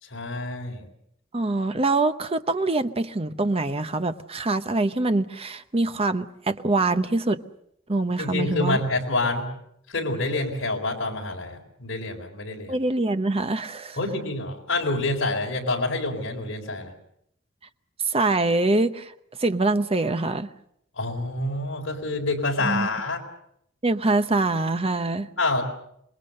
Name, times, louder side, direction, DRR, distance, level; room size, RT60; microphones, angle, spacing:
voice 1, 0.0-0.8 8.2-9.5 9.9-12.8 14.0-16.9 21.0-23.2 25.4-25.6, left 2 dB, 65° left, 0 dB, 4.2 m, -27 dB
voice 2, 1.3-7.4 7.9-8.8 12.7-14.0 18.1-19.1 19.4-20.5 22.6-22.9 23.8-25.3, right 2 dB, 30° right, 10 dB, 0.9 m, -24 dB
27.0 x 21.0 x 6.6 m, 0.74 s
head